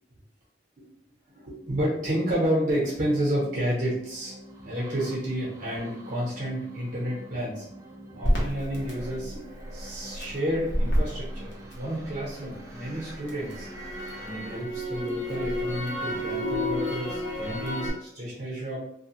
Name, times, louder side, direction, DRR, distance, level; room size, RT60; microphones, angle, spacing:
sound 1, 1.3-14.6, right 1 dB, 20° right, 0.4 m, -47 dB
voice 1, 1.3-4.4 4.6-7.7 8.1-9.4 9.7-13.7 14.2-18.8, equal, 50° right, -5 dB, 0.8 m, -30 dB
Crackle, 8.2-12.4 12.7-17.9, equal, 85° left, 0.9 m, -30 dB
2.7 x 2.3 x 2.9 m, 0.74 s
head